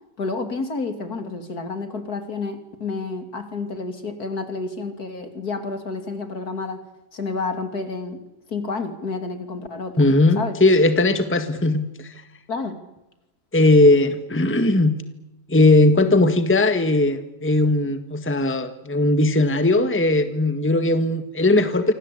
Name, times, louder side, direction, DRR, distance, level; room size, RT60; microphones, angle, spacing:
voice 1, 0.2-6.8 7.1-8.2 8.5-10.1 10.4-10.5 12.5-12.8, left 3 dB, 60° left, 8 dB, 3.3 m, -30 dB
voice 2, 10.0-12.2 13.5-14.9 15.5-21.9, left 2 dB, 5° left, 9 dB, 1.6 m, -18 dB
28.0 x 25.0 x 8.5 m, 0.91 s
omnidirectional pair, 1.8 m